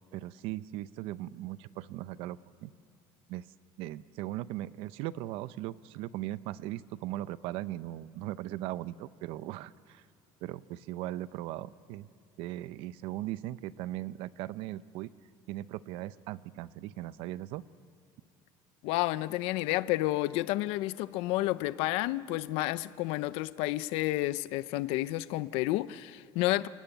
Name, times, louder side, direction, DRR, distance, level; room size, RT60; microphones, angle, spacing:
voice 1, 0.1-2.7 3.3-3.5 3.8-10.0 10.4-12.1 12.4-15.1 15.5-17.6, right 15 dB, 60° right, 0.6 m, -38 dB
voice 2, 18.8-26.7, left 17 dB, 65° left, 0.6 m, -30 dB
29.5 x 17.5 x 9.1 m
cardioid pair, 175°, 11 cm